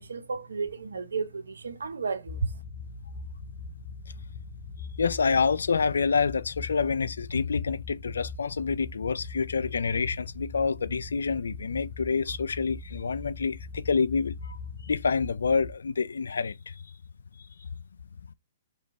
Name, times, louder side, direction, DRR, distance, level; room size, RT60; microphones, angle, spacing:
voice 1, 0.0-2.5, right 5 dB, 80° right, 0.8 m, -33 dB
sound 1, 2.3-15.7, left 4 dB, 50° left, 0.7 m, -41 dB
voice 2, 5.0-14.6 14.9-16.5, left 5 dB, 80° left, 0.3 m, -27 dB
3.2 x 3.0 x 4.1 m
hypercardioid pair, 125°, 0 cm